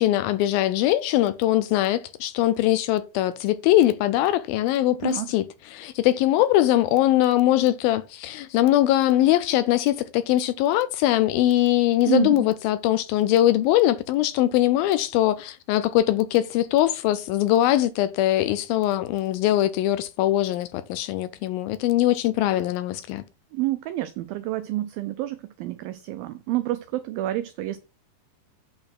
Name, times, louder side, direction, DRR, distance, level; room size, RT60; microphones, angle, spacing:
voice 1, 0.0-5.4 5.7-23.2, left 14 dB, 85° left, 2.1 m, -21 dB
voice 2, 12.1-12.5 23.5-27.8, right 16 dB, 85° right, 2.1 m, -28 dB
8.6 x 4.3 x 6.0 m
omnidirectional pair, 4.7 m